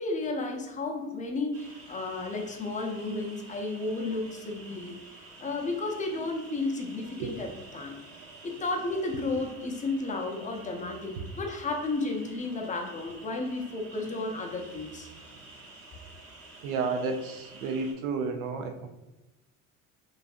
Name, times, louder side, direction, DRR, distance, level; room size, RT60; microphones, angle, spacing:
voice 1, 0.0-5.0 5.4-8.0 8.4-15.1, left 2 dB, 20° left, 2 dB, 0.5 m, -33 dB
sound 1, 1.5-17.9, right 2 dB, 35° right, 0.9 m, -50 dB
voice 2, 16.6-18.9, right 4 dB, 80° right, 5 dB, 0.6 m, -31 dB
2.6 x 2.3 x 2.4 m, 0.98 s
hypercardioid pair, 70°, 42 cm